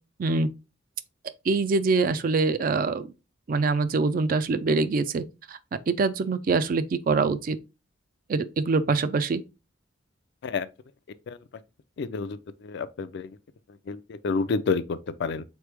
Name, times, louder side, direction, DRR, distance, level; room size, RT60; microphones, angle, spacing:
voice 1, 1.5-3.1 3.5-5.6 5.9-7.6 8.3-9.4, right 4 dB, 45° right, 0.4 m, -24 dB
voice 2, 12.0-12.4 12.6-13.3 13.9-14.0 14.2-15.4, left 4 dB, 60° left, 0.4 m, -28 dB
4.0 x 3.1 x 3.4 m
head